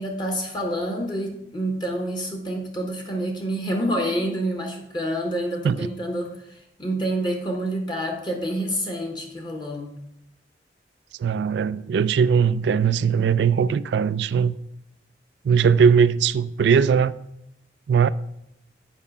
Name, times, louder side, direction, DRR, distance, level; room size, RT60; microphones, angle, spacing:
voice 1, 0.0-9.9, right 1 dB, 25° left, 1.1 m, -28 dB
voice 2, 11.2-14.5 15.4-17.1 17.9-18.1, right 6 dB, 80° right, 0.3 m, -19 dB
7.4 x 4.9 x 5.4 m
head